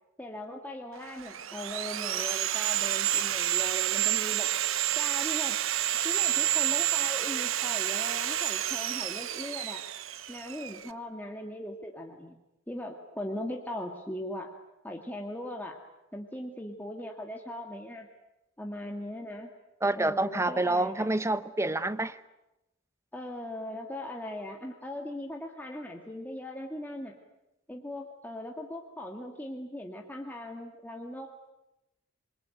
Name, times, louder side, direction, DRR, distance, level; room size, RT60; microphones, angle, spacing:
voice 1, 0.2-4.5 5.0-5.6 6.0-9.8 10.3-12.4 12.7-14.5 14.8-15.8 16.1-18.1 18.6-19.5 19.9-21.1 23.1-27.1 27.7-31.5, left 1 dB, 10° left, 1.9 m, -39 dB
Sawing, 1.0-10.9, right 12 dB, 70° right, 1.0 m, -29 dB
voice 2, 19.8-22.2, right 2 dB, 15° right, 0.9 m, -28 dB
27.5 x 22.0 x 9.3 m
head